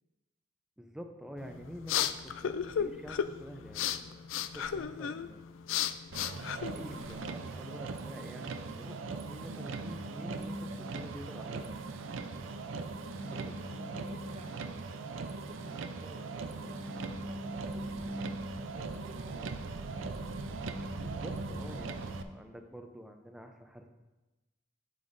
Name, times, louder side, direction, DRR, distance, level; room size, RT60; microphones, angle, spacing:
voice 1, 0.8-5.4 6.2-9.0 9.3-11.8 21.0-23.9, equal, 5° right, 5 dB, 0.5 m, -48 dB
sound 1, 1.4-7.3, left 8 dB, 85° left, 0.4 m, -35 dB
Motor vehicle (road), 6.1-22.2, right 4 dB, 85° right, 0.5 m, -40 dB
sound 2, 9.0-11.2 11.9-15.0 16.1-19.1 19.5-22.5, equal, 40° left, 1.6 m, -45 dB
voice 2, 13.2-14.6 15.2-16.3 16.6-16.9 17.3-18.1 18.7-19.5, right 1 dB, 30° right, 3 dB, 0.8 m, -53 dB
8.8 x 8.5 x 2.6 m, 1.1 s
head